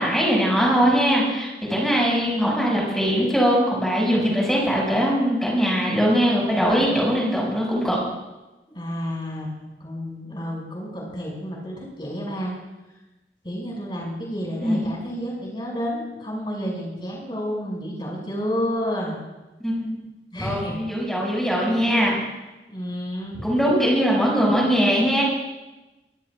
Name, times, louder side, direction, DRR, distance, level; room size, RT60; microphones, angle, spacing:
voice 1, 0.0-8.0 14.6-14.8 19.6-19.9 20.4-22.1 23.4-25.2, equal, ahead, -4 dB, 6.5 m, -21 dB
voice 2, 8.7-12.5 13.4-19.1 20.3-20.8 22.7-23.5, equal, 25° left, -2 dB, 6.4 m, -30 dB
25.5 x 18.0 x 2.5 m, 1.1 s
head